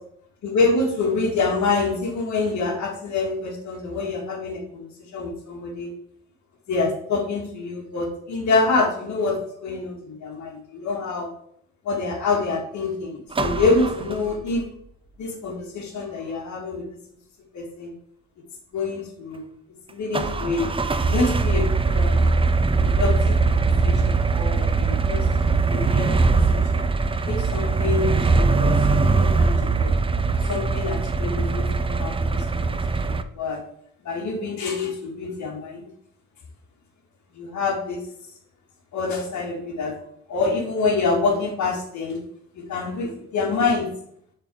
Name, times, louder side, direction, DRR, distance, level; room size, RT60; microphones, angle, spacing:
voice 1, 0.4-5.9 6.7-11.3 11.8-14.7 15.2-16.9 17.5-17.9 18.7-19.5 19.9-20.7 21.0-22.3 22.8-25.3 25.7-26.3 26.5-26.8 27.3-29.9 30.5-32.3 32.5-32.8 33.0-33.6 34.0-35.8 37.3-38.1 38.9-40.0 40.3-42.2 42.6-43.9, left 3 dB, 70° left, 1 dB, 2.1 m, -26 dB
sound 1, 13.3-14.6 20.1-33.2, right 4 dB, 20° right, 0.5 m, -21 dB
6.7 x 4.1 x 6.3 m, 0.68 s
cardioid pair, 90°, 30 cm